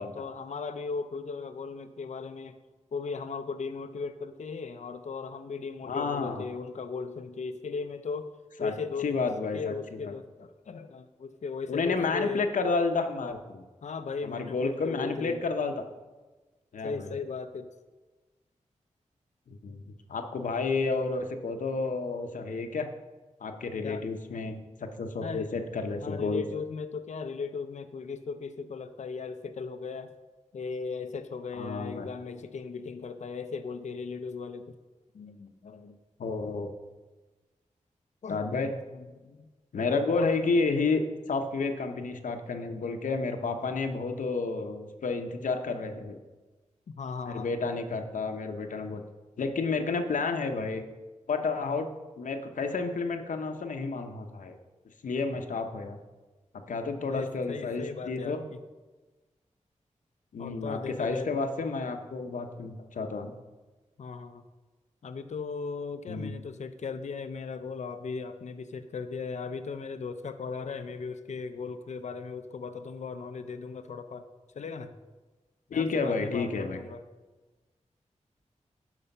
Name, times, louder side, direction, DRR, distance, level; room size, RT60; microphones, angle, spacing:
voice 1, 0.0-2.6 2.9-8.3 8.6-9.1 9.5-12.4 13.8-15.4 16.8-17.7 23.8-24.0 25.2-25.5 26.0-30.1 30.5-34.8 35.1-36.0 38.2-39.5 40.1-40.3 47.0-47.5 57.1-58.6 60.4-61.3 64.0-64.4 65.0-74.3 74.5-74.9 75.7-77.0, left 5 dB, 65° left, 9 dB, 0.6 m, -37 dB
voice 2, 5.9-6.4 8.6-8.7 9.0-9.7 10.0-10.1 11.7-13.6 14.2-15.7 16.7-17.1 19.5-19.8 20.1-22.9 23.4-26.4 31.5-32.1 36.2-36.7 38.3-38.7 39.7-41.0 41.3-46.2 47.3-49.0 49.4-50.8 51.3-51.9 52.2-54.6 55.0-56.0 56.7-58.4 60.3-63.3 66.1-66.3 75.7-76.8, left 4 dB, 90° left, 6 dB, 0.9 m, -30 dB
11.0 x 4.9 x 5.4 m, 1.2 s
wide cardioid pair, 95°, 13 cm